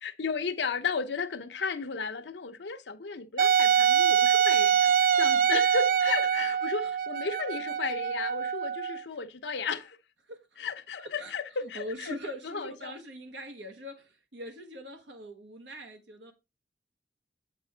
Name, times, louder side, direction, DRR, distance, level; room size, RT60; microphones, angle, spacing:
voice 1, 0.0-10.0 10.6-12.2 12.4-12.9, left 5 dB, 80° left, 0.7 m, -34 dB
Wind instrument woodwind instrument, 3.4-9.0, right 8 dB, 50° right, 0.4 m, -24 dB
voice 2, 10.3-10.6 11.2-11.3 11.7-16.3, equal, 85° right, 1.1 m, -42 dB
8.1 x 5.3 x 3.3 m
head